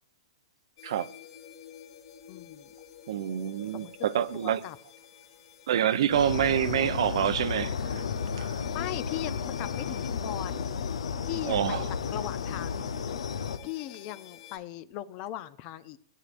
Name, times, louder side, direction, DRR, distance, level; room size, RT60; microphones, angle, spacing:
sound 1, 0.8-14.6, left 9 dB, 55° left, 2.8 m, -51 dB
voice 1, 2.3-2.7 3.7-4.8 8.7-10.7 11.3-11.8 12.1-12.9 13.6-16.0, left 13 dB, 35° left, 0.6 m, -39 dB
voice 2, 3.1-4.6 5.7-8.1 8.4-8.6 11.4-11.9, right 10 dB, 65° right, 0.7 m, -27 dB
sound 2, 6.1-13.6, left 6 dB, 80° left, 0.7 m, -33 dB
17.5 x 8.6 x 2.6 m
hypercardioid pair, 145°, 3 cm